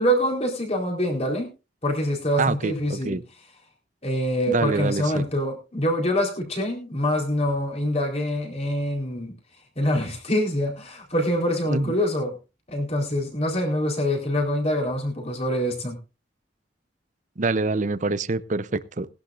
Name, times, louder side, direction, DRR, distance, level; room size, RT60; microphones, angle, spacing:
voice 1, 0.0-1.5 1.8-3.2 4.0-9.3 9.8-12.3 12.7-16.0, equal, 35° left, 1 dB, 4.2 m, -25 dB
voice 2, 2.4-3.2 4.5-5.2 11.7-11.9 17.4-19.1, right 3 dB, 45° right, 15 dB, 0.7 m, -26 dB
20.0 x 11.5 x 2.6 m, 0.29 s
head